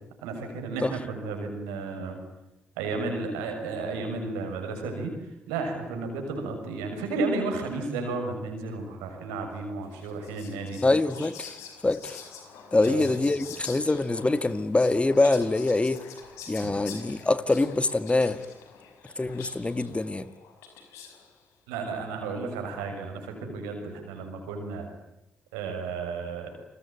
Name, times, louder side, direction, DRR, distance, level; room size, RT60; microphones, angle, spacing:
voice 1, 0.2-2.2 2.8-5.1 5.5-10.8 12.8-13.0 16.6-16.7 21.7-24.8 25.5-26.5, right 3 dB, 90° right, 6.4 m, -33 dB
Whispering, 9.9-21.4, left 7 dB, 80° left, 5.2 m, -46 dB
voice 2, 10.8-11.5 11.8-12.2 12.7-16.0 16.5-18.4 19.2-20.3, left 2 dB, 25° left, 2.0 m, -24 dB
28.5 x 22.5 x 9.1 m
hypercardioid pair, 45°, 5 cm